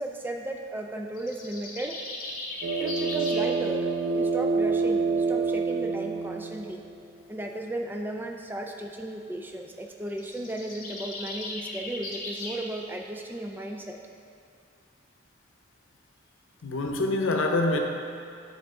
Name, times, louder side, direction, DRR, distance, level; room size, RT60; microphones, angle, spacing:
voice 1, 0.0-2.0 2.8-6.8 7.3-14.0, right 1 dB, 10° right, 3 dB, 0.3 m, -35 dB
sound 1, 1.2-3.5 10.1-12.6, left 2 dB, 45° left, 0.9 m, -37 dB
sound 2, 2.6-7.1, right 4 dB, 85° right, 0.6 m, -27 dB
voice 2, 16.6-17.8, left 2 dB, 85° left, 3 dB, 0.7 m, -25 dB
7.9 x 4.7 x 3.7 m, 2.4 s
head